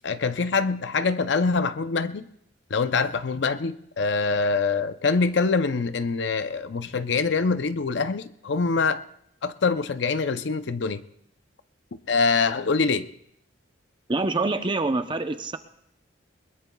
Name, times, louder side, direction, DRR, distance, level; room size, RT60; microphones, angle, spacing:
voice 1, 0.0-2.2 2.7-9.0 9.4-11.0 12.1-13.1, left 4 dB, 65° left, 0.6 m, -24 dB
voice 2, 14.1-15.6, right 3 dB, 25° right, 0.6 m, -25 dB
21.5 x 21.0 x 2.3 m
head